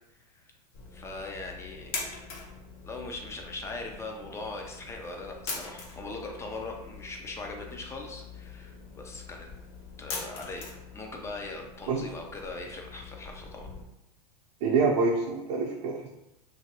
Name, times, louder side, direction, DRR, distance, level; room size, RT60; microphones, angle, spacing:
voice 1, 0.1-0.4 0.9-2.0 2.8-9.5 10.0-13.7, left 2 dB, 15° left, 1 dB, 0.4 m, -40 dB
sound 1, 0.7-13.8, left 4 dB, 50° left, 0.8 m, -43 dB
voice 2, 14.6-16.1, right 4 dB, 55° right, -5 dB, 0.7 m, -26 dB
2.8 x 2.6 x 2.8 m, 0.92 s
hypercardioid pair, 115°, 21 cm